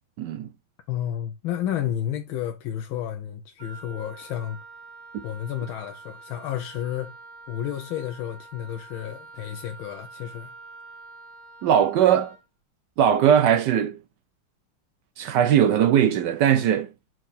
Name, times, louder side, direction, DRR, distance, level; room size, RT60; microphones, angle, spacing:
voice 1, 0.2-0.5 11.6-12.4 13.0-14.0 15.2-16.9, right 9 dB, 75° right, 1.0 m, -20 dB
voice 2, 0.9-4.6 5.2-7.1 7.5-10.5, left 11 dB, 75° left, 1.4 m, -31 dB
Wind instrument woodwind instrument, 3.6-12.4, right 3 dB, 40° right, 1.2 m, -46 dB
6.0 x 4.6 x 4.1 m
omnidirectional pair, 2.3 m